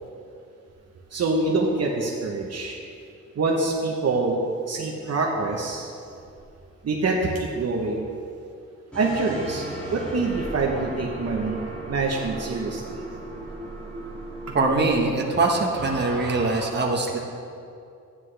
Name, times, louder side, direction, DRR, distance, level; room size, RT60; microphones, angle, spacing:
voice 1, 1.1-2.8 3.4-5.9 6.8-8.0 8.9-9.6 9.9-11.6 11.9-13.0, right 3 dB, 55° right, -1 dB, 1.0 m, -25 dB
sound 1, 8.9-16.7, right 1 dB, 5° left, 2.1 m, -36 dB
voice 2, 14.5-17.2, right 3 dB, 35° right, 0 dB, 1.2 m, -23 dB
13.5 x 9.5 x 3.3 m, 2.5 s
wide cardioid pair, 145°, 30 cm